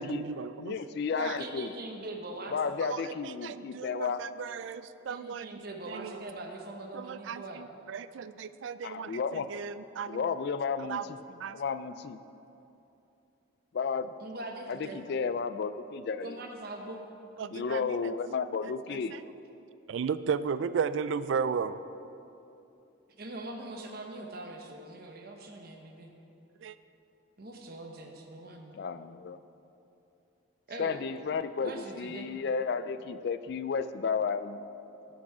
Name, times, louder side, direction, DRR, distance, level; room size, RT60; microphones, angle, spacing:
voice 1, 0.0-0.8 1.2-1.4 2.8-5.6 5.9-6.1 6.9-10.3 10.8-11.6 17.4-18.1 18.6-19.2 19.9-21.8 26.6-26.8, right 6 dB, 70° right, 14 dB, 0.3 m, -35 dB
voice 2, 0.6-1.7 2.5-4.2 8.8-9.5 10.1-11.2 11.5-12.2 13.7-14.1 14.7-16.4 17.5-19.1 28.7-29.4 30.8-34.7, left 5 dB, 55° left, 12 dB, 0.3 m, -33 dB
voice 3, 1.4-2.8 5.1-7.7 14.2-15.0 16.2-17.0 23.1-26.1 27.4-28.8 30.7-31.0 31.6-32.3, right 2 dB, 50° right, 2 dB, 1.0 m, -42 dB
12.0 x 6.2 x 4.9 m, 2.8 s
head